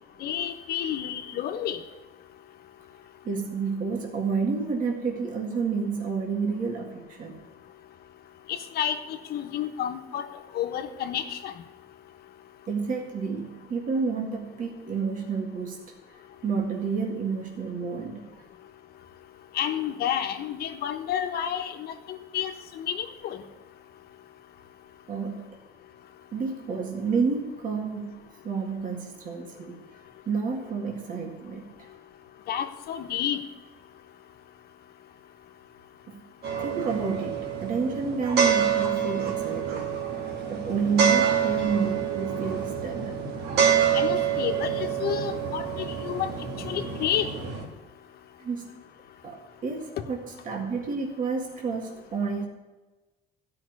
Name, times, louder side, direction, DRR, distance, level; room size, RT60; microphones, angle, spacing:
voice 1, 0.2-1.8 8.5-10.3 10.5-11.5 19.5-23.4 32.5-33.4 43.9-46.3 46.6-47.3, left 9 dB, 70° left, 7 dB, 1.2 m, -30 dB
voice 2, 3.2-7.4 12.7-15.8 16.4-18.3 25.1-25.6 26.3-29.8 30.3-31.9 36.1-36.2 36.6-40.0 40.5-43.2 48.4-48.7 49.2-52.5, right 5 dB, 50° right, 1 dB, 2.1 m, -30 dB
sound 1, 36.4-47.6, right 8 dB, 75° right, 2.2 m, -27 dB
13.0 x 5.9 x 9.6 m, 1.2 s
cardioid pair, 110°, 17 cm